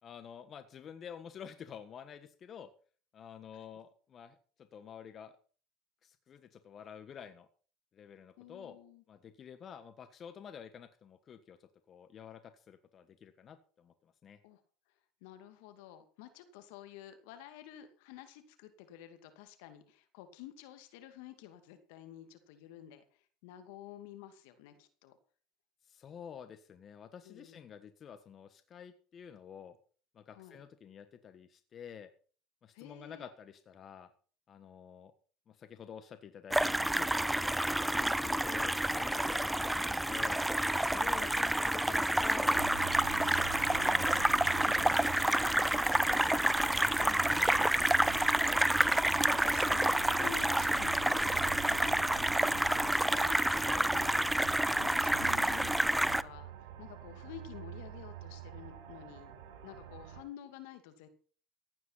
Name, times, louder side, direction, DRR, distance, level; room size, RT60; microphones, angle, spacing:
voice 1, 0.0-2.7 3.1-5.3 6.0-7.5 7.9-8.8 9.1-14.4 25.8-29.8 30.1-32.1 32.6-34.1 34.5-35.1 35.5-37.4 38.0-40.4 40.8-42.6 43.3-46.3 46.7-48.2 53.5-53.9, left 8 dB, 40° left, 10 dB, 1.5 m, -50 dB
voice 2, 8.4-9.0 14.4-14.6 15.2-25.2 27.2-27.6 30.3-30.6 32.7-33.3 48.6-48.8 49.1-56.5 56.8-59.3 59.6-61.1, left 11 dB, 70° left, 9 dB, 2.4 m, -51 dB
sound 1, 36.5-56.2, right 1 dB, 5° right, 0.6 m, -29 dB
sound 2, 42.5-60.2, right 12 dB, 75° right, 4.1 m, -46 dB
15.5 x 9.5 x 5.7 m, 0.42 s
hypercardioid pair, 80°, 0 cm